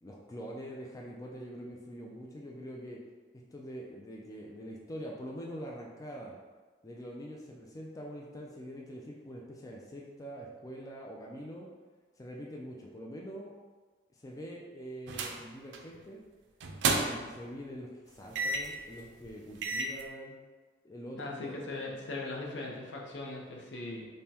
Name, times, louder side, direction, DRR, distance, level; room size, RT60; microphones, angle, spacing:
voice 1, 0.0-3.0 3.5-6.3 6.8-11.7 12.2-13.5 14.2-16.2 16.9-20.4 20.8-21.7, equal, 20° left, -2 dB, 0.3 m, -44 dB
sound 1, 15.1-15.4 15.7-16.0 16.6-17.4 18.3-18.8 19.3-19.4 19.6-20.0, right 3 dB, 80° right, 0.4 m, -31 dB
voice 2, 21.2-24.1, left 2 dB, 75° left, -2 dB, 0.7 m, -39 dB
5.3 x 2.2 x 2.8 m, 1.3 s
head